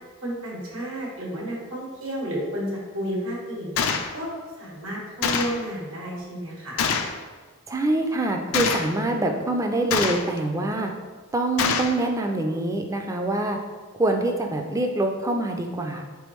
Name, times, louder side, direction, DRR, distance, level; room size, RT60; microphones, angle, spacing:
voice 1, 0.2-4.3 4.6-6.9, equal, 85° right, -3 dB, 1.3 m, -32 dB
Gunshot gunfire, 3.8-4.1 5.2-5.6 6.8-7.2 8.5-8.9 9.9-10.4 11.6-12.0, left 6 dB, 85° left, 0.4 m, -24 dB
voice 2, 7.7-10.9 11.3-13.6 14.0-16.0, right 2 dB, 15° right, 3 dB, 0.3 m, -25 dB
4.5 x 3.4 x 3.1 m, 1.4 s
head